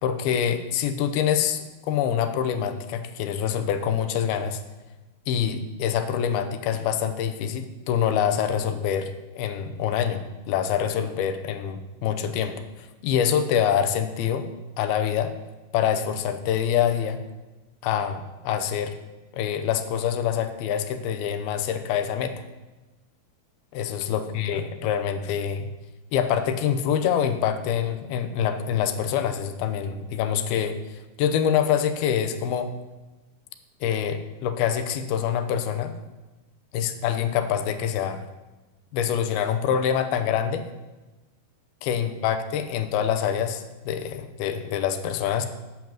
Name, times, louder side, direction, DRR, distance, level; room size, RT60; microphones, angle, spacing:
voice 1, 0.0-4.6 5.3-14.5 14.8-15.3 15.7-17.2 17.8-18.9 19.3-22.4 23.7-25.7 26.1-32.7 33.8-35.9 36.7-38.2 38.9-40.7 41.8-45.5, left 8 dB, 85° left, 8 dB, 2.7 m, -25 dB
8.7 x 6.0 x 7.4 m, 1.1 s
omnidirectional pair, 4.3 m